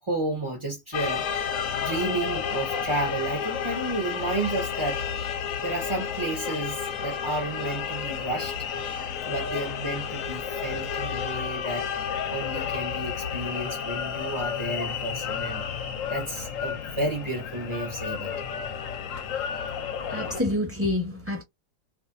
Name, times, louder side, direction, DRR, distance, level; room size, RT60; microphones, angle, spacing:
voice 1, 0.0-5.0 5.6-8.6 9.2-11.9 12.3-15.7 16.1-18.3, right 2 dB, 30° right, 0.5 m, -32 dB
sound 1, 0.9-20.4, left 7 dB, 65° left, 0.8 m, -31 dB
voice 2, 20.0-21.4, left 1 dB, 10° right, 1.2 m, -28 dB
2.6 x 2.4 x 2.5 m
omnidirectional pair, 1.7 m